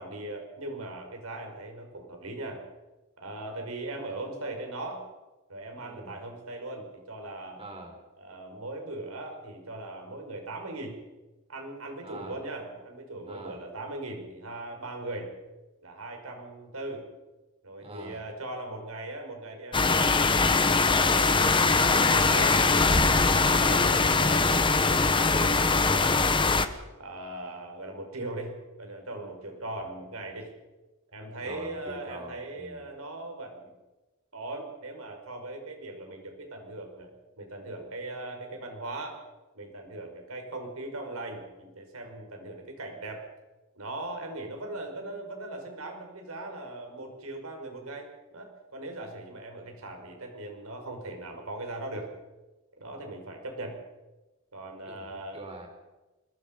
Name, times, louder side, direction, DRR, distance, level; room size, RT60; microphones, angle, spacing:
voice 1, 0.0-2.7 3.2-5.1 5.5-7.6 8.2-11.0 11.5-15.3 15.8-17.1 17.6-22.6 23.7-26.3 27.0-30.5 31.1-33.7 34.3-37.1 37.4-39.2 39.5-43.3 43.8-52.1 52.8-53.8 54.5-55.4, right 2 dB, 85° right, 3 dB, 5.8 m, -39 dB
voice 2, 5.7-6.2 7.6-8.0 12.0-12.4 13.3-13.6 17.8-18.2 23.3-23.6 31.4-32.8 54.8-55.1 55.3-55.7, right 1 dB, 30° right, 3 dB, 4.9 m, -44 dB
sound 1, 19.7-26.7, left 3 dB, 25° left, 1.2 m, -22 dB
25.0 x 22.0 x 5.5 m, 1.1 s
head